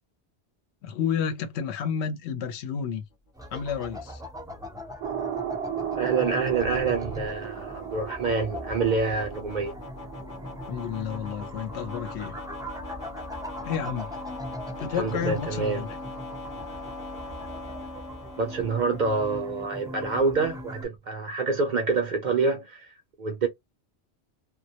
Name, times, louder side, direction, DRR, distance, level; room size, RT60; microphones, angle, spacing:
voice 1, 0.8-3.0 3.5-4.2 10.7-12.4 13.6-14.1 14.8-15.9, left 7 dB, 80° left, 0.8 m, -31 dB
sound 1, 3.1-19.3, left 2 dB, 50° left, 0.6 m, -43 dB
sound 2, 3.3-20.9, equal, 5° right, 0.4 m, -40 dB
sound 3, 5.0-10.9, right 8 dB, 80° right, 0.8 m, -35 dB
voice 2, 6.0-9.7 15.0-15.8 18.4-22.9 23.2-23.5, right 4 dB, 55° right, 0.5 m, -27 dB
2.2 x 2.0 x 2.7 m
omnidirectional pair, 1.1 m